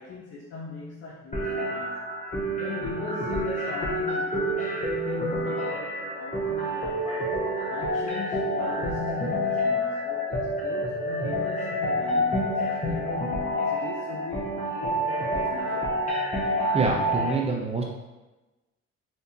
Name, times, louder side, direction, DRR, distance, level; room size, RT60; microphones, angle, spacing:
voice 1, 0.0-1.9 2.6-7.3 7.7-16.0, left 4 dB, 55° left, -3 dB, 0.6 m, -39 dB
sound 1, 1.3-17.3, equal, 25° left, 0.8 m, -28 dB
voice 2, 16.4-17.8, right 4 dB, 20° right, 0 dB, 0.6 m, -27 dB
3.4 x 2.8 x 2.6 m, 1.1 s
cardioid pair, 90°, 30 cm